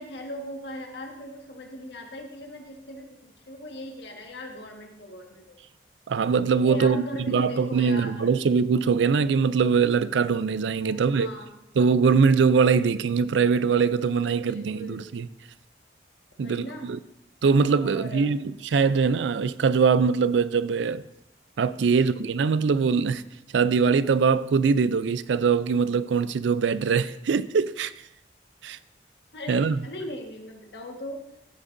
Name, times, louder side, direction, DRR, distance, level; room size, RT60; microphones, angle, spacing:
voice 1, 0.0-5.6 6.6-8.3 10.8-11.5 14.0-15.1 16.4-16.9 17.8-18.3 21.8-22.1 29.3-31.2, left 1 dB, 75° left, 1.6 m, -39 dB
voice 2, 6.1-11.3 11.8-15.3 16.4-17.0 17.4-21.0 21.6-23.2 23.5-27.9 28.6-28.8 29.5-29.8, right 5 dB, 85° right, 0.4 m, -22 dB
15.0 x 8.5 x 2.6 m
head